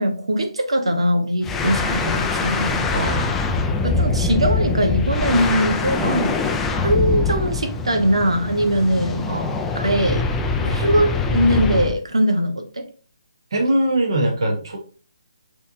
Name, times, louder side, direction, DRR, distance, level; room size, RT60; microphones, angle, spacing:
voice 1, 0.0-2.9 3.8-6.4 6.8-9.3 9.7-10.2 10.6-12.9, equal, 85° right, 1.2 m, -21 dB
sound 1, 1.4-12.0, left 3 dB, 10° left, 0.3 m, -23 dB
voice 2, 2.9-3.3 6.0-6.2 9.3-9.5 13.5-14.8, right 1 dB, 60° right, 1.2 m, -21 dB
6.3 x 3.1 x 2.7 m
hypercardioid pair, 155°, 3 cm